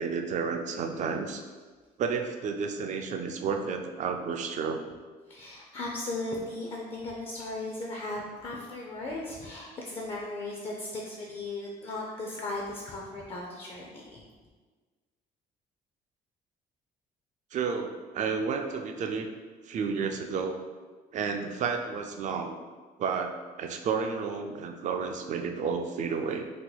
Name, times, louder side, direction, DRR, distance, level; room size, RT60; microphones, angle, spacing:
voice 1, 0.0-1.4 2.0-4.8 17.5-19.3 19.7-20.5 21.1-22.6 23.0-26.4, right 5 dB, 45° right, 5 dB, 0.4 m, -31 dB
voice 2, 5.3-14.2, left 2 dB, 35° left, -2 dB, 0.5 m, -37 dB
2.9 x 2.2 x 3.9 m, 1.4 s
cardioid pair, 110°, 17 cm